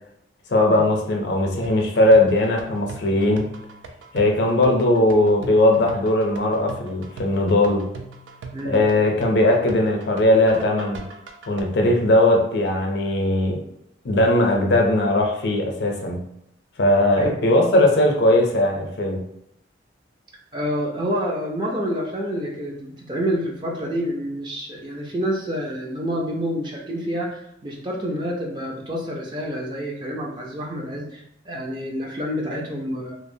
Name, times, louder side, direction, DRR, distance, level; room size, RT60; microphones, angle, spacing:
voice 1, 0.5-3.4 4.1-7.8 8.6-11.0 11.5-13.6 14.0-16.2 16.8-19.2, left 1 dB, 65° left, 1 dB, 0.5 m, -19 dB
sound 1, 1.6-11.6, right 4 dB, 90° right, 0.4 m, -40 dB
voice 2, 20.5-33.1, equal, 25° right, -2 dB, 0.4 m, -28 dB
2.8 x 2.0 x 2.6 m, 0.78 s
head